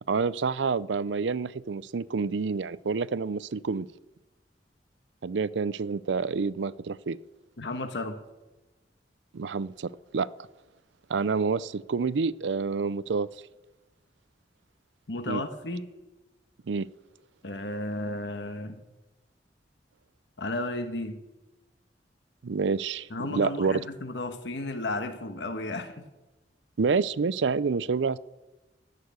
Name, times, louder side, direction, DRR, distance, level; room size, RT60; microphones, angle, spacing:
voice 1, 0.1-3.9 5.2-7.2 9.3-10.3 11.1-13.3 15.3-15.4 16.7-16.9 22.4-23.8 26.8-28.2, right 5 dB, 90° right, 0.5 m, -28 dB
voice 2, 7.6-8.2 15.1-15.9 17.4-18.8 20.4-21.2 23.1-26.0, left 2 dB, 70° left, 1.4 m, -33 dB
16.0 x 6.7 x 9.5 m
head